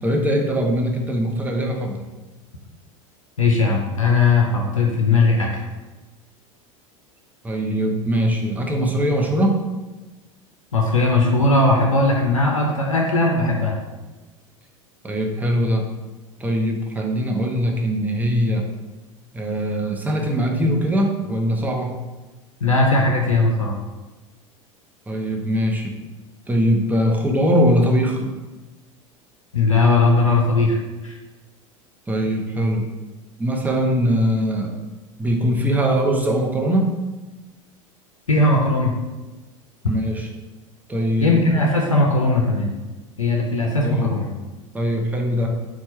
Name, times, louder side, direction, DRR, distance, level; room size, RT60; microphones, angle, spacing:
voice 1, 0.0-2.0 7.4-9.6 15.0-15.9 16.4-18.7 19.3-22.0 25.1-25.9 26.5-28.3 32.1-32.9 33.4-34.7 35.2-36.9 39.8-40.3 40.9-41.4 43.8-44.1 44.7-45.5, equal, 10° right, 1 dB, 0.7 m, -21 dB
voice 2, 3.4-5.5 10.7-13.8 22.6-23.7 29.5-31.1 38.3-38.9 41.2-42.7 43.2-44.3, left 3 dB, 90° left, -1 dB, 0.5 m, -18 dB
4.3 x 2.3 x 4.2 m, 1.2 s
figure-of-eight pair, 80°, 17 cm